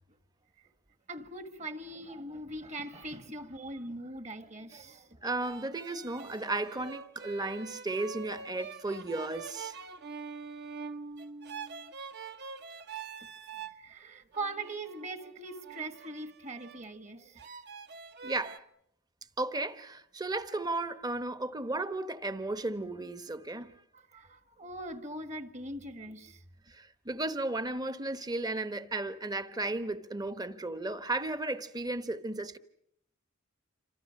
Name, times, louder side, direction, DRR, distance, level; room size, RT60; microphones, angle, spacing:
voice 1, 1.1-5.3 13.7-17.5 23.9-26.4, right 2 dB, 35° right, 1.8 m, -41 dB
voice 2, 5.2-9.8 18.2-18.6 19.4-23.7 26.7-32.6, right 2 dB, 20° right, 1.0 m, -34 dB
sound 1, 5.4-13.8 14.3-16.9 17.4-18.6, right 5 dB, 50° right, 1.4 m, -45 dB
28.0 x 25.5 x 6.5 m
head